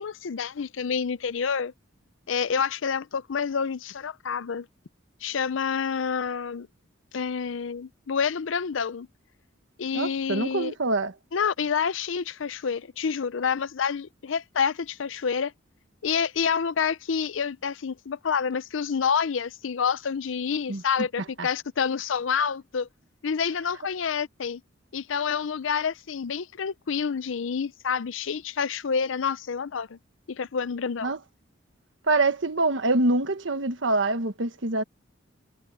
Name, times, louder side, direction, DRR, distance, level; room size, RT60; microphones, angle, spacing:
voice 1, 0.0-1.7 2.3-4.7 5.2-6.7 7.1-9.1 9.8-10.7 11.3-15.5 16.0-22.9 23.2-24.6 24.9-30.0 30.3-31.1, left 6 dB, 75° left, 0.5 m, -28 dB
voice 2, 9.9-11.1 20.7-20.8 21.4-21.5 31.0-31.2 32.0-34.8, right 2 dB, 70° right, 1.3 m, -25 dB
head